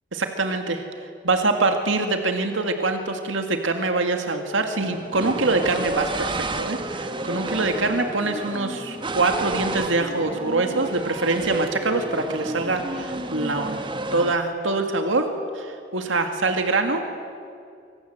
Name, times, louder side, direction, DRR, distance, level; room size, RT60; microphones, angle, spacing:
voice 1, 0.1-0.8 1.2-13.8 14.1-15.3 15.5-17.0, right 3 dB, 80° right, 5 dB, 2.0 m, -24 dB
sound 1, 4.8-14.4, right 2 dB, 25° right, 1.4 m, -31 dB
25.5 x 25.5 x 7.8 m, 2.5 s
head